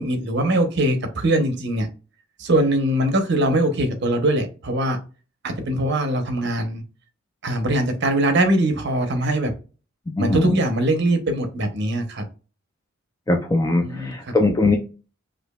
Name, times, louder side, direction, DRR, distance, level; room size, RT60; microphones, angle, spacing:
voice 1, 0.0-1.9 2.4-5.0 5.4-6.8 7.4-9.5 10.2-12.2 13.8-14.3, right 1 dB, 55° right, 0.8 m, -22 dB
voice 2, 10.2-10.5 13.3-14.8, left 2 dB, 15° left, 0.4 m, -20 dB
5.0 x 2.6 x 2.3 m
head